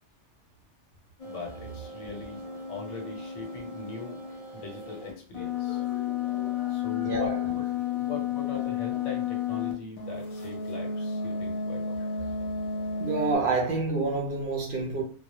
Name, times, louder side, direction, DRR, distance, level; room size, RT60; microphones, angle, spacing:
voice 1, 1.2-2.4 2.7-4.2 4.5-5.8 6.7-7.6 7.9-12.0, left 4 dB, 85° left, 1.1 m, -40 dB
sound 1, 1.2-9.7 10.0-13.4, left 7 dB, 45° left, 0.5 m, -32 dB
voice 2, 7.0-7.4 12.3-12.4 13.0-15.0, right 3 dB, 60° right, 0.6 m, -28 dB
2.1 x 2.0 x 2.8 m
omnidirectional pair, 1.2 m